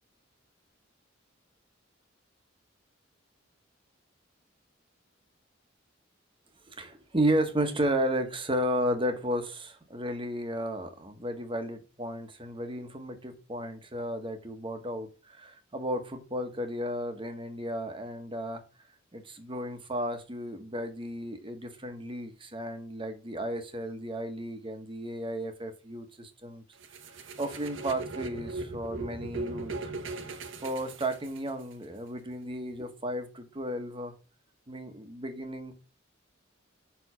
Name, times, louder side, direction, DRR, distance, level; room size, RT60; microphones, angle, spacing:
voice 1, 6.7-18.6 19.1-26.6 27.4-29.9 30.6-34.1 34.7-35.7, right 1 dB, 25° right, 1.2 m, -33 dB
sound 1, 26.8-31.7, right 3 dB, 70° right, 1.0 m, -38 dB
5.6 x 4.7 x 5.5 m
head